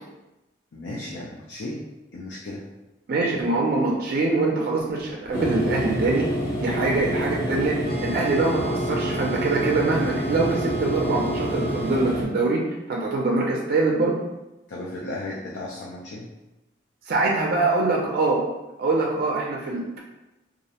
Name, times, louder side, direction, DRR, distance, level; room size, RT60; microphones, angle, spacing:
voice 1, 0.7-1.8 2.1-2.6 14.7-16.3, left 2 dB, 75° left, -4 dB, 0.4 m, -35 dB
voice 2, 3.1-6.3 6.6-12.6 12.9-14.2 17.1-18.4 18.8-20.0, right 3 dB, 55° right, -1 dB, 0.4 m, -24 dB
sound 1, 5.3-12.2, equal, 15° left, 0.6 m, -28 dB
sound 2, 7.8-12.0, right 4 dB, 55° left, 1.0 m, -38 dB
2.4 x 2.0 x 2.7 m, 0.99 s
head